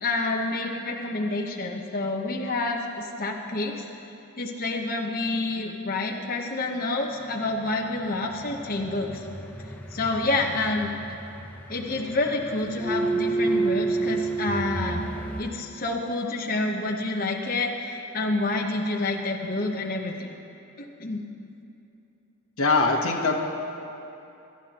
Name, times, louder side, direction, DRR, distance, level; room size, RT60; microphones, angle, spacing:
voice 1, 0.0-3.8 4.4-9.2 9.9-10.9 11.7-15.1 15.4-20.3 21.0-21.2, left 2 dB, 40° left, -1 dB, 1.0 m, -28 dB
sound 1, 7.2-15.4, right 3 dB, 5° left, 0.8 m, -31 dB
voice 2, 22.6-23.4, left 3 dB, 65° left, 0 dB, 1.2 m, -22 dB
28.0 x 12.5 x 3.0 m, 2.8 s
head